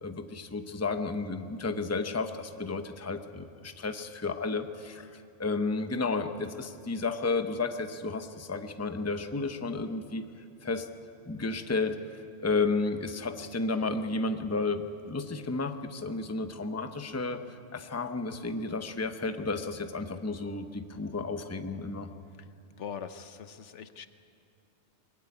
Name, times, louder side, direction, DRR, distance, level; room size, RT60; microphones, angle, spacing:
voice 1, 0.0-5.1 5.4-10.3 10.6-10.9 11.3-12.0 12.4-17.4 17.7-22.1, left 3 dB, 15° left, 7 dB, 0.8 m, -32 dB
voice 2, 22.8-24.1, left 7 dB, 75° left, 10 dB, 1.2 m, -42 dB
22.0 x 16.0 x 9.8 m, 2.4 s
omnidirectional pair, 1.2 m